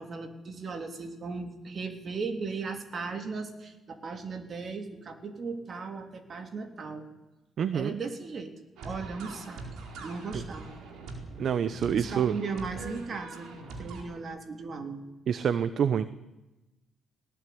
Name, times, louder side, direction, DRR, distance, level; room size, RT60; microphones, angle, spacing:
voice 1, 0.0-7.0 7.7-8.5 8.8-9.6 10.0-10.8 11.9-13.5 13.8-15.0, right 4 dB, 45° right, 6 dB, 3.4 m, -37 dB
voice 2, 7.6-7.9 11.4-12.3 15.3-16.0, right 8 dB, 60° right, 13 dB, 1.0 m, -27 dB
sound 1, 8.8-14.0, right 3 dB, 80° right, 4.5 m, -42 dB
19.0 x 19.0 x 9.5 m, 1.0 s
cardioid pair, 90°, 0 cm